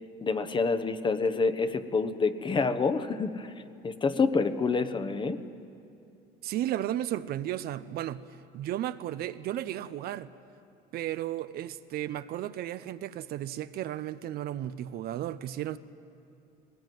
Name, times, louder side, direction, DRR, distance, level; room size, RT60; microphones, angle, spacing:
voice 1, 0.2-3.5 3.8-5.4, left 4 dB, 25° left, 1.1 m, -27 dB
voice 2, 6.4-8.2 8.5-10.3 10.9-15.8, right 12 dB, 60° right, 0.7 m, -34 dB
20.0 x 19.5 x 9.4 m
supercardioid pair, 105°, 18 cm